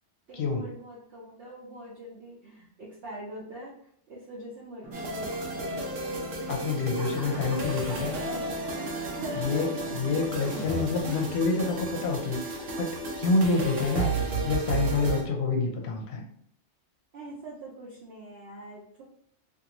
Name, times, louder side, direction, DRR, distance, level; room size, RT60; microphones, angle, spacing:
voice 1, 0.3-3.7 4.1-6.2 6.9-10.3 10.7-11.0 12.6-12.7 13.4-13.6 17.1-19.0, right 2 dB, 65° right, -4 dB, 0.8 m, -43 dB
sound 1, 4.8-11.0, right 3 dB, 20° right, 0.4 m, -43 dB
sound 2, 4.9-15.2, right 2 dB, 85° right, 1.0 m, -33 dB
voice 2, 6.5-8.2 9.3-16.2, left 3 dB, 70° left, 2 dB, 0.8 m, -28 dB
2.5 x 2.5 x 2.9 m, 0.67 s
omnidirectional pair, 1.3 m